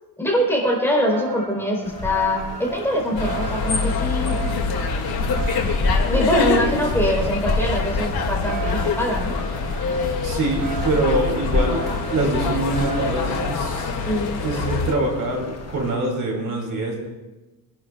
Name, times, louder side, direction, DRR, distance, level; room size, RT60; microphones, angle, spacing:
voice 1, 0.2-4.4 6.1-9.3 14.0-14.4, equal, 5° left, -3 dB, 3.9 m, -23 dB
sound 1, 1.1-13.5, right 7 dB, 90° right, 3.2 m, -36 dB
sound 2, 1.8-16.0, left 3 dB, 40° left, 1.3 m, -30 dB
sound 3, 3.1-14.9, left 4 dB, 70° left, 2.2 m, -25 dB
voice 2, 10.2-11.8 12.1-13.9 14.4-17.0, right 2 dB, 50° right, 0 dB, 2.9 m, -24 dB
25.0 x 11.0 x 2.4 m, 1.1 s
cardioid pair, 120°, 39 cm